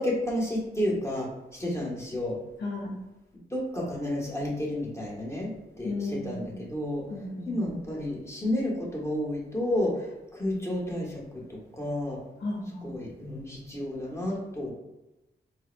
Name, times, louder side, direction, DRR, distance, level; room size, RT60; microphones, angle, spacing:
voice 1, 0.0-2.4 3.5-5.5 5.8-5.9 6.2-7.0 7.5-12.2 12.8-14.7, left 1 dB, 15° left, -4 dB, 1.1 m, -31 dB
voice 2, 2.6-3.0 5.8-6.6 7.1-7.7 12.4-12.9, left 2 dB, 65° left, -3 dB, 0.7 m, -34 dB
4.4 x 2.1 x 2.5 m, 0.97 s
cardioid pair, 65°, 20 cm